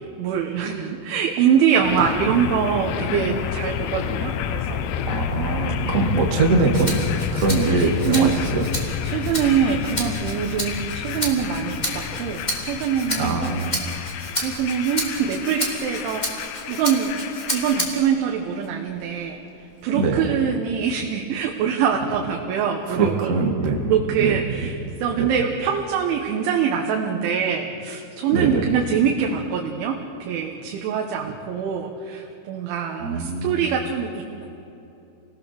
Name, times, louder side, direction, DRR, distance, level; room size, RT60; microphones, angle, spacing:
voice 1, 0.2-4.8 7.8-8.3 9.0-13.4 14.3-16.3 16.7-17.1 17.5-19.4 19.8-23.4 23.9-34.5, right 7 dB, 75° right, 1 dB, 3.6 m, -24 dB
sound 1, 1.8-17.8, left 9 dB, 75° left, 2.8 m, -30 dB
voice 2, 5.1-7.0 7.3-8.7 13.2-13.8 19.9-20.2 22.9-23.9 24.2-24.7 25.2-25.3 28.3-28.6 33.0-33.6, right 3 dB, 50° right, 0 dB, 0.9 m, -22 dB
Rattle (instrument), 6.7-18.2 18.6-19.8, equal, 10° left, 2.1 m, -32 dB
29.0 x 19.5 x 6.8 m, 2.9 s
omnidirectional pair, 5.6 m